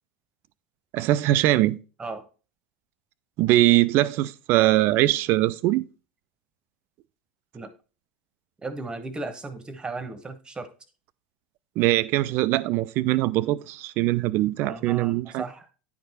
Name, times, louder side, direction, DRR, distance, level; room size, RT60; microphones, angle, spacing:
voice 1, 0.9-1.8 3.4-5.8 11.8-15.4, right 16 dB, 45° right, 0.4 m, -22 dB
voice 2, 8.6-10.7 14.6-15.7, right 3 dB, 15° right, 1.1 m, -35 dB
10.0 x 4.7 x 4.0 m
figure-of-eight pair, 80°, 5 cm